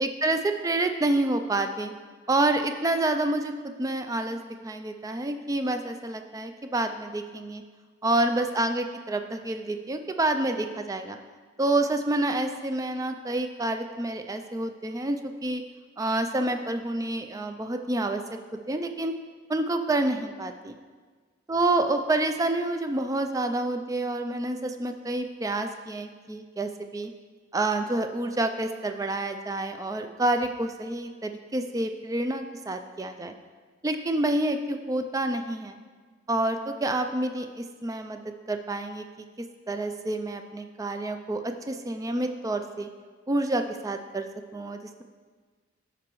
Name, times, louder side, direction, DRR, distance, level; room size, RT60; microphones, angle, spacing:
voice 1, 0.0-1.9 2.3-7.6 8.0-11.2 11.6-15.6 16.0-18.2 18.7-19.1 19.5-20.7 21.5-27.1 27.5-33.3 33.8-35.8 36.3-38.2 38.5-39.1 39.7-42.9 43.3-45.0, right 2 dB, 15° right, 7 dB, 0.3 m, -28 dB
13.0 x 5.1 x 3.1 m, 1.5 s
head